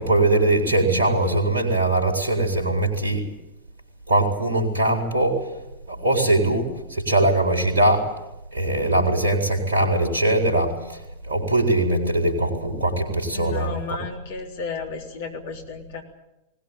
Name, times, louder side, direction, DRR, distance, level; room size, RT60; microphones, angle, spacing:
voice 1, 0.0-3.3 4.1-5.5 5.9-8.1 8.5-14.0, right 2 dB, 70° right, 2 dB, 4.2 m, -21 dB
voice 2, 13.3-16.0, left 5 dB, 55° left, 3 dB, 3.5 m, -33 dB
20.5 x 19.0 x 9.1 m, 0.95 s
figure-of-eight pair, 90°, 0 cm